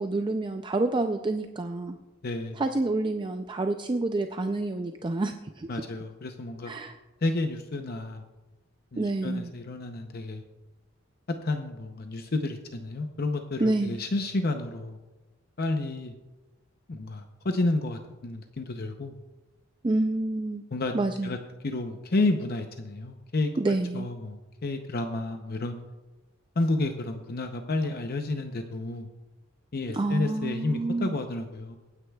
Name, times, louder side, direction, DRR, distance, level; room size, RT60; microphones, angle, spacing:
voice 1, 0.0-2.0 2.5-5.7 6.7-7.0 9.0-9.5 13.6-14.0 19.8-20.6 20.9-21.3 23.6-24.1 29.9-31.2, right 2 dB, 25° right, 7 dB, 0.4 m, -28 dB
voice 2, 2.2-2.6 5.7-6.7 7.2-8.2 8.9-10.4 11.4-15.0 15.6-16.1 16.9-19.1 20.7-20.9 21.2-21.4 21.6-25.8 26.6-29.1 29.7-31.8, left 2 dB, 50° left, 6 dB, 0.7 m, -30 dB
24.0 x 9.6 x 2.3 m, 1.1 s
head